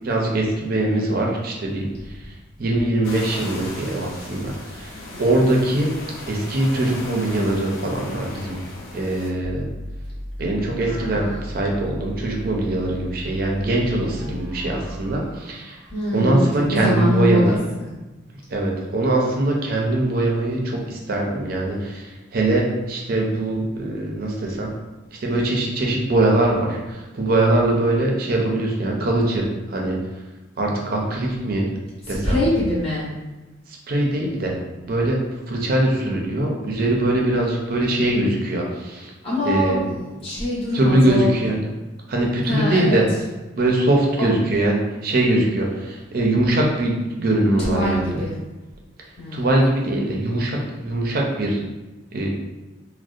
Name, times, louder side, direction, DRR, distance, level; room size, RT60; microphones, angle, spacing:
voice 1, 0.0-2.3 2.6-5.9 6.3-8.6 8.9-9.7 10.4-15.8 16.1-17.6 18.5-24.7 25.2-30.0 30.6-31.7 32.1-32.4 33.7-34.6 34.9-35.2 35.5-39.1 39.5-39.8 40.7-41.7 42.1-43.1 43.6-48.2 49.3-51.6 52.1-52.3, right 1 dB, 45° right, -1 dB, 0.4 m, -22 dB
sound 1, 3.0-9.3, left 2 dB, 80° left, 0.4 m, -37 dB
sound 2, 9.4-16.4, equal, 15° right, 0.7 m, -36 dB
voice 2, 10.8-11.4 15.9-17.5 17.8-17.9 32.1-33.1 39.2-41.3 42.5-43.0 44.2-44.3 47.6-48.3 49.2-49.5, left 1 dB, 30° left, -9 dB, 0.8 m, -24 dB
2.6 x 2.0 x 2.4 m, 1.1 s
head